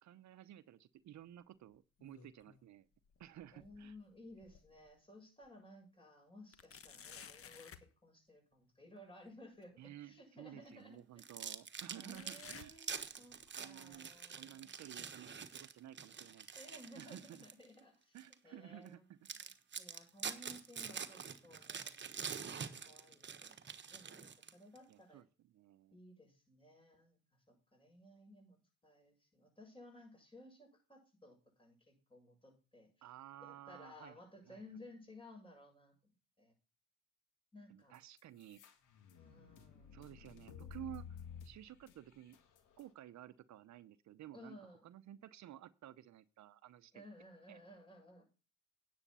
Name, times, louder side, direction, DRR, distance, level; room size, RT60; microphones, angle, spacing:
voice 1, 0.0-2.9 3.2-4.0 6.9-7.0 9.8-12.8 13.1-13.2 13.6-16.5 16.9-17.4 18.1-19.4 20.4-20.5 24.9-26.0 33.0-34.2 34.5-34.6 37.7-38.6 39.9-42.4 42.8-47.0 47.5-47.6, right 12 dB, 65° right, 15 dB, 0.8 m, -54 dB
sound 1, 1.7-2.7 3.0-4.9 5.4-5.5 6.5-7.9 9.6-9.7 10.6-10.7 12.1-13.5 13.8-14.2 14.9-15.0 15.8-15.9, left 7 dB, 50° left, 1.3 m, -57 dB
voice 2, 3.5-11.3 11.9-14.7 16.5-18.2 18.4-19.0 19.4-19.5 19.8-25.2 25.9-27.2 27.5-33.1 33.4-36.5 37.5-38.0 39.1-40.1 44.3-44.9 46.9-48.2, left 1 dB, 15° left, 2 dB, 7.4 m, -58 dB
sound 2, 11.2-17.6 18.2-18.3 18.9-19.0 19.3-24.8, right 6 dB, 40° right, 1.3 m, -46 dB
sound 3, 37.9-42.9, left 7 dB, 85° left, 2.1 m, -53 dB
9.9 x 8.0 x 5.5 m, 0.32 s
cardioid pair, 90°, 30 cm